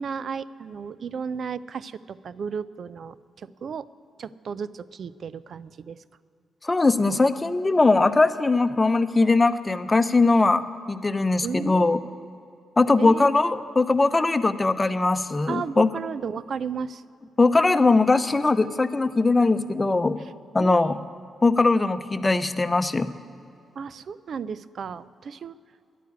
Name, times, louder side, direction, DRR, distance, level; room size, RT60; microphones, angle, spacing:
voice 1, 0.0-3.9 4.2-6.0 11.4-12.3 13.0-13.3 15.5-17.0 20.2-20.3 20.6-21.0 23.8-25.6, right 6 dB, 60° right, 17 dB, 0.5 m, -34 dB
voice 2, 6.6-12.0 12.8-15.9 17.4-20.2 20.5-21.0 21.4-23.1, left 3 dB, 30° left, 12 dB, 0.8 m, -20 dB
11.0 x 9.2 x 9.5 m, 2.6 s
hypercardioid pair, 45°, 0 cm